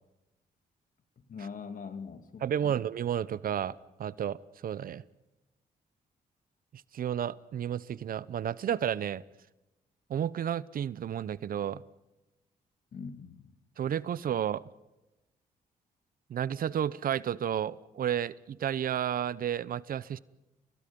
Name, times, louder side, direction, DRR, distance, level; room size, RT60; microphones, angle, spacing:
voice 1, 1.3-2.8 12.9-13.5, left 5 dB, 60° left, 8 dB, 2.6 m, -42 dB
voice 2, 2.4-5.0 6.9-9.2 10.1-11.8 13.8-14.6 16.3-20.2, right 9 dB, 65° right, 19 dB, 0.9 m, -32 dB
30.0 x 21.5 x 5.4 m, 0.98 s
cardioid pair, 70°, 16 cm